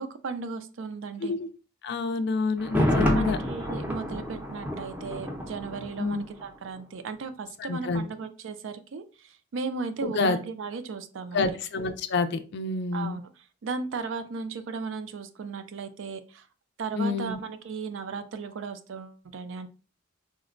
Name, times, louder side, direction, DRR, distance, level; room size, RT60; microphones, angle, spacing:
voice 1, 0.0-1.3 3.1-11.6 12.9-13.3 13.6-16.5 16.8-19.7, right 4 dB, 65° right, 10 dB, 0.4 m, -36 dB
voice 2, 1.8-3.4 6.0-6.2 7.7-8.1 10.0-10.4 11.3-13.2 17.0-17.4, left 3 dB, 55° left, 9 dB, 0.4 m, -27 dB
Thunder, 2.6-6.5 6.8-6.9, equal, 10° right, 0.5 m, -29 dB
3.8 x 2.1 x 2.4 m, 0.35 s
head